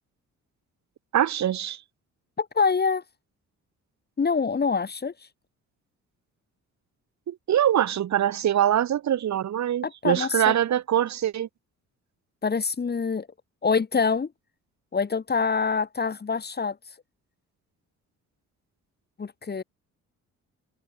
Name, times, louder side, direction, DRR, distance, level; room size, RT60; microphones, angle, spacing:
voice 1, 1.1-1.8 7.3-11.5, right 10 dB, 65° right, 3.8 m, -23 dB
voice 2, 2.4-3.0 4.2-5.1 9.8-10.5 12.4-13.3 13.6-14.3 14.9-16.8 19.2-19.6, left 5 dB, 35° left, 2.5 m, -25 dB
cardioid pair, 90°, 30 cm